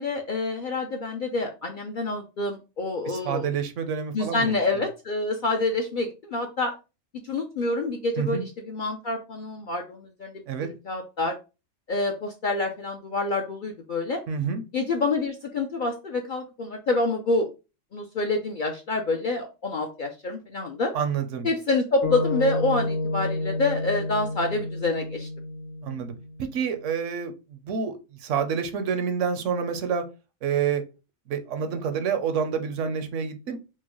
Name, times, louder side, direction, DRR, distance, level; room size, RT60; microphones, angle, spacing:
voice 1, 0.0-3.5 4.1-6.7 7.2-10.3 10.9-11.3 11.9-14.2 14.7-17.5 17.9-20.9 21.4-25.3, left 2 dB, 60° left, 3 dB, 0.5 m, -27 dB
voice 2, 3.1-4.5 8.2-8.4 10.5-10.7 14.3-14.6 20.9-21.5 25.8-26.1 26.4-30.0 30.4-30.8 31.3-33.6, right 7 dB, 75° right, 8 dB, 0.9 m, -28 dB
sound 1, 22.0-26.4, left 2 dB, 85° left, 1.1 m, -30 dB
4.5 x 2.1 x 3.0 m, 0.30 s
omnidirectional pair, 1.3 m